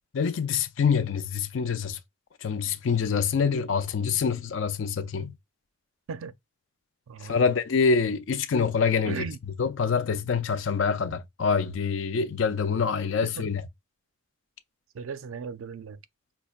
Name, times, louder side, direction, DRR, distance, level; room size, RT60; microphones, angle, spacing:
voice 1, 0.1-2.0 2.4-5.3 7.2-9.2 9.6-13.6, left 5 dB, 70° left, 0.4 m, -26 dB
voice 2, 7.1-7.5 9.1-9.4 13.2-13.5 14.9-16.0, right 6 dB, 85° right, 0.4 m, -37 dB
5.3 x 2.2 x 2.3 m
head